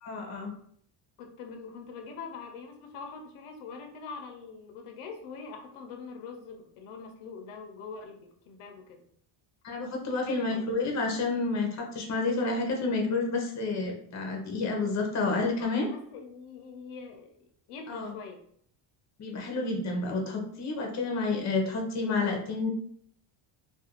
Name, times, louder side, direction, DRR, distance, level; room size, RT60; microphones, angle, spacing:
voice 1, 0.0-0.5 9.6-15.9 17.9-18.1 19.2-22.7, left 3 dB, 35° left, 1 dB, 0.7 m, -30 dB
voice 2, 1.2-9.0 10.1-10.7 15.6-17.3 17.7-18.4, left 5 dB, 85° left, 4 dB, 0.6 m, -43 dB
2.4 x 2.3 x 2.9 m, 0.64 s
cardioid pair, 120°, 49 cm